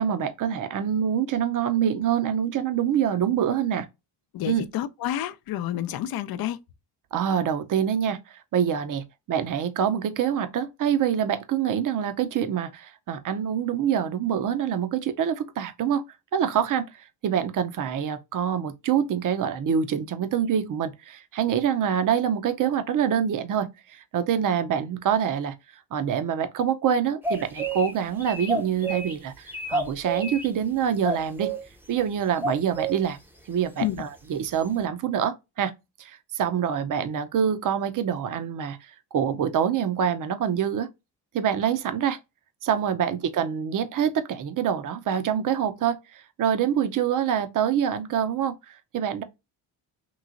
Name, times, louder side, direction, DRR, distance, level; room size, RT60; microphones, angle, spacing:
voice 1, 0.0-3.9 4.5-4.6 7.1-16.0 16.3-25.6 25.9-31.5 31.9-33.2 33.5-35.7 36.0-40.9 41.3-42.2 42.6-49.2, right 8 dB, 50° right, 0.6 m, -26 dB
voice 2, 4.3-6.6 33.8-34.0, left 12 dB, 60° left, 0.5 m, -29 dB
sound 1, 27.2-27.9 28.2-29.1 29.5-30.5 31.0-31.6 32.4-32.9, right 3 dB, 5° right, 0.6 m, -28 dB
3.0 x 2.9 x 2.5 m
cardioid pair, 80°, 43 cm